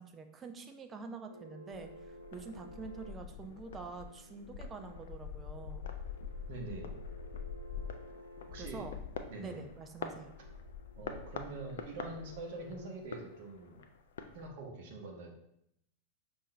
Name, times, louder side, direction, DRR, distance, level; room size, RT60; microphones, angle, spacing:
voice 1, 0.0-5.9 8.6-8.9 9.4-10.3, right 4 dB, 20° right, 6 dB, 0.5 m, -46 dB
sound 1, 1.3-12.9, equal, 85° right, 0.5 m, -55 dB
sound 2, 1.7-14.5, left 6 dB, 60° left, 0.4 m, -45 dB
voice 2, 6.5-7.0 8.5-8.8 9.3-9.6 10.9-13.8 14.3-15.3, right 3 dB, 50° right, 1 dB, 0.8 m, -44 dB
5.4 x 2.6 x 3.2 m, 0.75 s
figure-of-eight pair, 90°, 0 cm